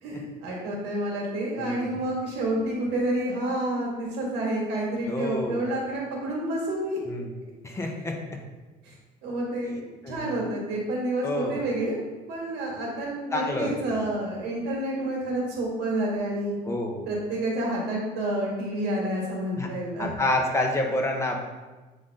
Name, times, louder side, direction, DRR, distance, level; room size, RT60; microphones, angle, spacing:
voice 1, 0.0-7.0 8.8-8.9 9.2-12.0 12.3-16.6 17.1-20.1, right 1 dB, 90° right, -2 dB, 2.2 m, -29 dB
voice 2, 1.6-2.0 5.1-5.7 7.1-7.2 7.6-8.4 10.0-10.3 11.2-11.6 13.3-14.0 16.6-17.1 19.6-19.7 20.0-21.4, left 1 dB, 15° left, 0 dB, 1.3 m, -28 dB
8.5 x 3.9 x 4.2 m, 1.2 s
cardioid pair, 110°, 17 cm